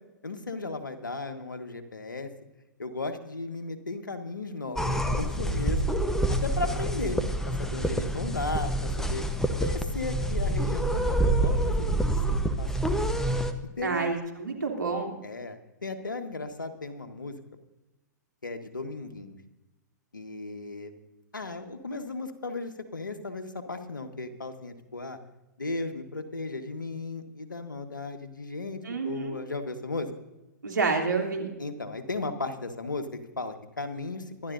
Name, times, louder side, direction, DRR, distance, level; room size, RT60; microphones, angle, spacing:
voice 1, 0.2-2.3 2.8-5.9 6.3-7.2 7.4-9.2 9.6-12.0 12.3-12.9 13.8-14.1 15.2-17.4 18.4-19.4 20.1-20.9 21.3-25.2 25.6-30.1 31.6-34.5, left 3 dB, 85° left, 7 dB, 1.6 m, -35 dB
sound 1, 4.8-13.5, right 1 dB, 5° left, 1.0 m, -27 dB
voice 2, 13.8-15.2 28.8-29.4 30.6-31.5, right 4 dB, 80° right, 2 dB, 3.0 m, -29 dB
25.0 x 11.5 x 2.7 m, 1.0 s
figure-of-eight pair, 110°, 10 cm